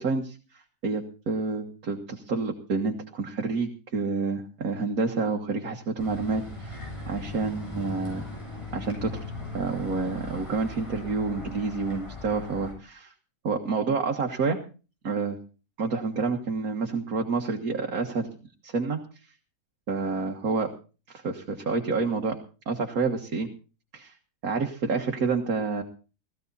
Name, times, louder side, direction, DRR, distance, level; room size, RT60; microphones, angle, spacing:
voice 1, 0.0-8.3 8.7-9.2 9.5-13.1 13.4-14.6 15.0-15.4 15.8-18.3 18.6-19.0 19.9-20.7 21.1-22.4 22.7-23.5 23.9-24.1 24.4-25.8, right 4 dB, 80° right, 2 dB, 2.1 m, -28 dB
sound 1, 6.0-12.7, left 2 dB, 20° left, 7.7 m, -39 dB
17.0 x 15.0 x 4.1 m, 0.35 s
omnidirectional pair, 1.5 m